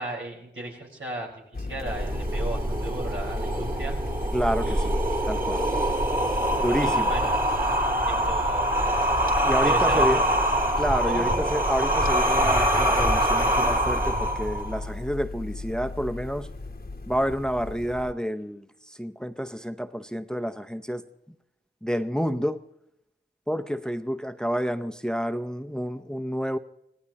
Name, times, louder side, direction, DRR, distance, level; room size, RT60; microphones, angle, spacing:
voice 1, 0.0-4.0 4.6-4.9 6.8-7.3 8.1-8.9 9.6-10.2 11.0-11.5, right 1 dB, 85° right, -3 dB, 4.8 m, -35 dB
sound 1, 1.5-18.1, left 3 dB, 50° left, 1.1 m, -37 dB
sound 2, 1.9-14.8, right 1 dB, 45° right, 2.3 m, -24 dB
voice 2, 4.3-4.9 5.2-5.6 6.6-7.1 9.4-10.3 10.8-16.5 17.1-21.0 21.8-22.6 23.5-26.6, equal, 5° left, 8 dB, 0.7 m, -29 dB
25.5 x 17.5 x 2.9 m, 0.83 s
wide cardioid pair, 45°, 20 cm